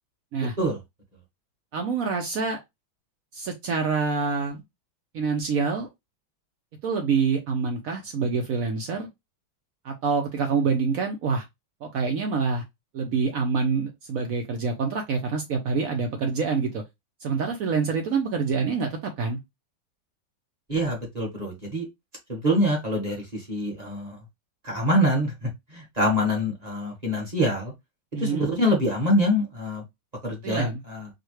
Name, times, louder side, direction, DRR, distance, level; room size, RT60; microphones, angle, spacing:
voice 1, 1.7-2.6 3.3-4.6 5.1-5.9 6.8-9.1 9.8-11.4 11.8-12.6 12.9-16.8 17.2-19.4 28.1-28.5 30.4-30.8, right 5 dB, 75° right, 0.7 m, -26 dB
voice 2, 20.7-21.9 22.3-24.2 24.6-27.7 28.1-29.8 30.2-31.1, equal, 25° right, 1.0 m, -25 dB
4.7 x 2.2 x 3.1 m
omnidirectional pair, 2.2 m